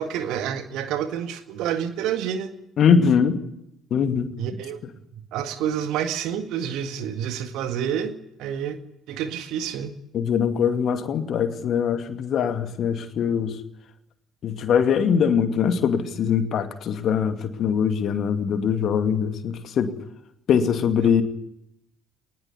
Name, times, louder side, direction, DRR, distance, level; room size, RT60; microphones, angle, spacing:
voice 1, 0.0-2.5 4.4-4.8 5.1-8.8 9.1-9.9, right 9 dB, 55° right, 9 dB, 1.9 m, -28 dB
voice 2, 2.8-3.4 3.9-4.4 10.1-13.6 14.4-19.9 20.5-21.2, left 7 dB, 45° left, 8 dB, 2.5 m, -22 dB
20.5 x 20.0 x 9.8 m, 0.79 s
figure-of-eight pair, 55°, 0 cm